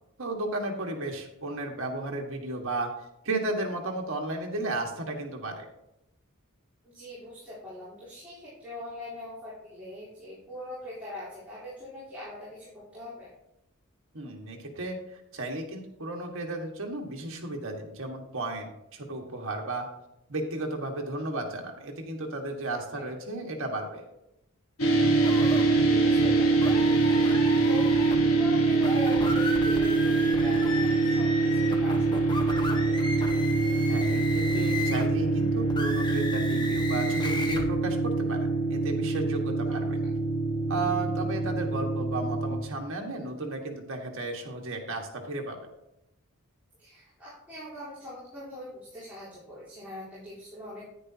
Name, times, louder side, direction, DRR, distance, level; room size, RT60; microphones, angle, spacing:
voice 1, 0.2-2.9 3.2-5.7 14.1-19.9 20.3-24.0 33.9-34.2 34.5-40.0 40.7-45.6, right 2 dB, 65° right, 1 dB, 1.6 m, -34 dB
voice 2, 6.8-13.3 22.7-23.0 25.7-26.6 27.6-28.0 28.3-32.8 39.7-39.9 46.8-50.8, left 1 dB, 10° right, -12 dB, 3.7 m, -42 dB
sound 1, 24.8-42.6, right 3 dB, 70° left, 1.4 m, -24 dB
sound 2, 25.2-25.6 26.6-28.2 28.7-35.1 35.7-37.6, left 2 dB, 20° left, 1.0 m, -35 dB
10.0 x 9.5 x 2.8 m, 0.86 s
head